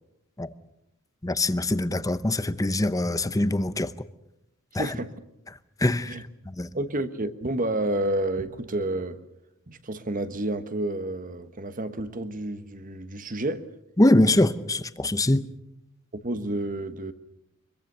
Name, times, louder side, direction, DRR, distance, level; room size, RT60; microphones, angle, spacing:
voice 1, 1.2-3.9 4.7-4.9 5.8-6.2 6.5-6.7 14.0-15.4, left 1 dB, 15° left, 0.8 m, -23 dB
voice 2, 4.7-5.1 6.1-6.2 6.7-9.2 9.7-13.6 16.2-17.1, right 1 dB, 40° right, 1.3 m, -30 dB
24.5 x 22.5 x 6.8 m
head